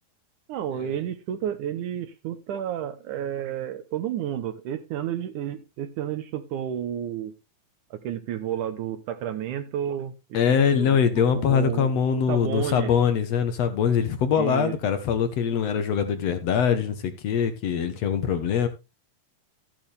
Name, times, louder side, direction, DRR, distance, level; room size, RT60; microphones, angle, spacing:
voice 1, 0.5-7.3 7.9-10.4 10.7-13.0 14.4-15.0, right 10 dB, 75° right, 2.2 m, -31 dB
voice 2, 10.3-18.7, left 7 dB, 65° left, 1.9 m, -23 dB
13.5 x 8.9 x 3.4 m
omnidirectional pair, 4.0 m